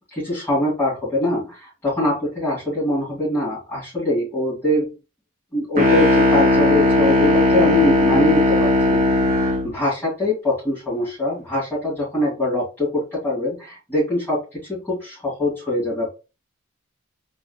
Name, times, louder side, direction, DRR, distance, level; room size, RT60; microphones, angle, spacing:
voice 1, 0.1-4.9 5.5-9.0 9.4-16.1, left 1 dB, 10° left, -10 dB, 2.3 m, -23 dB
sound 1, 5.8-9.7, left 1 dB, 40° right, 1.8 m, -17 dB
4.1 x 3.6 x 2.3 m, 0.30 s
head